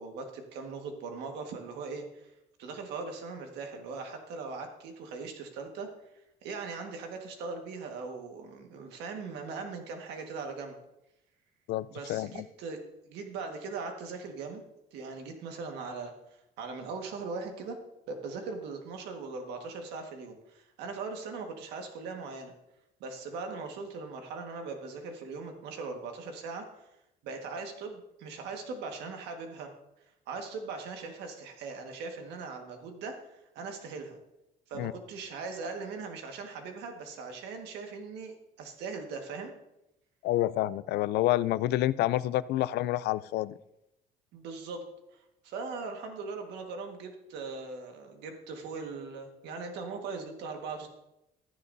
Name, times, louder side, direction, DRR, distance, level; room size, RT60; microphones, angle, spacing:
voice 1, 0.0-2.3 2.6-5.9 6.4-10.7 11.9-12.8 13.0-14.6 14.9-16.1 16.6-17.8 18.1-22.5 23.0-26.6 27.2-29.7 30.3-34.2 34.7-39.5 44.3-44.8 45.1-50.9, right 4 dB, 85° right, 4 dB, 1.6 m, -40 dB
voice 2, 11.7-12.3 34.8-34.9 40.2-43.6, left 15 dB, 75° left, 17 dB, 0.4 m, -28 dB
14.5 x 9.9 x 2.7 m, 0.88 s
cardioid pair, 110°, 17 cm